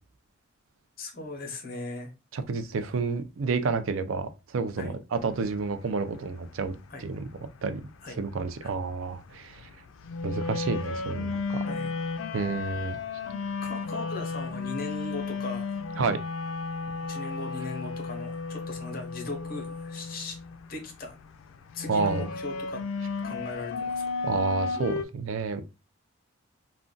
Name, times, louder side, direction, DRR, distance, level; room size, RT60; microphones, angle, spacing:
voice 1, 1.0-2.1 4.8-5.0 6.9-7.1 8.0-8.2 8.6-8.7 11.7-11.9 13.6-15.8 17.0-20.4 20.7-21.2 21.7-22.8 23.2-24.0, left 2 dB, 45° left, 0.8 m, -38 dB
voice 2, 2.3-6.7 7.0-7.2 7.6-7.8 8.2-9.7 10.2-11.6 12.3-13.0 16.0-16.2 21.9-22.2 24.2-25.6, right 4 dB, 85° right, 0.4 m, -30 dB
sound 1, 5.2-25.1, left 4 dB, 85° left, 0.3 m, -34 dB
2.5 x 2.2 x 3.7 m
head